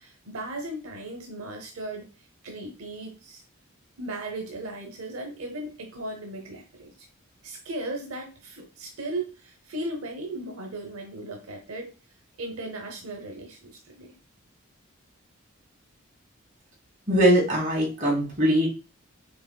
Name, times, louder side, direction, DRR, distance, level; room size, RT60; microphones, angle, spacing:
voice 1, 0.0-2.1 2.4-3.4 4.0-7.1 7.4-11.9 12.4-14.1, right 1 dB, 85° right, 2 dB, 0.8 m, -36 dB
voice 2, 17.1-18.7, equal, 35° right, -4 dB, 1.8 m, -21 dB
4.7 x 3.0 x 2.3 m, 0.33 s
head